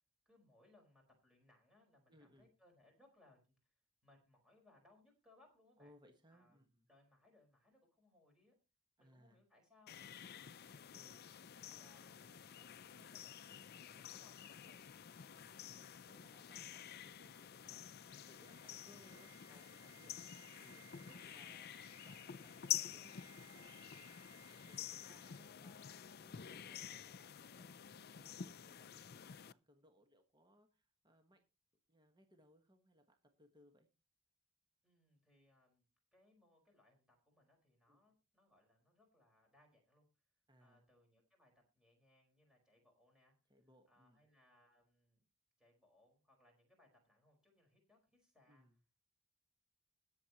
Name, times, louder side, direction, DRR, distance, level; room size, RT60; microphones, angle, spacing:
voice 1, 0.2-5.9 6.3-8.5 9.0-10.1 10.8-14.9 34.8-40.1 40.6-43.4 43.9-45.2 45.6-48.7, left 2 dB, 5° right, 1 dB, 4.6 m, -71 dB
voice 2, 2.1-2.5 5.8-6.9 9.0-9.4 10.9-11.3 15.6-21.7 22.0-31.4 31.9-33.9 37.9-38.0 40.5-40.8 43.5-44.3 48.5-48.8, equal, 20° right, 5 dB, 1.3 m, -68 dB
sound 1, 9.9-29.5, left 10 dB, 45° left, 0.4 m, -49 dB
sound 2, 16.9-25.8 26.1-26.3, right 12 dB, 65° right, 0.9 m, -66 dB
21.0 x 7.3 x 2.9 m, 0.30 s
head